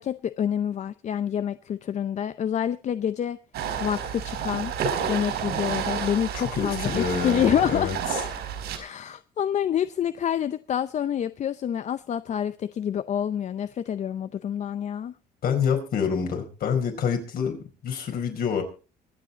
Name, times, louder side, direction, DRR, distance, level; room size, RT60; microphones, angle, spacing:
voice 1, 0.0-3.4 3.8-4.7 5.1-7.9 8.8-15.1, left 9 dB, 45° left, 0.6 m, -27 dB
sound 1, 3.5-8.8, right 7 dB, 75° right, 4.4 m, -30 dB
voice 2, 6.3-8.0 15.4-17.6 17.8-18.6, left 7 dB, 60° left, 4.6 m, -27 dB
24.0 x 8.4 x 4.0 m
cardioid pair, 110°, 17 cm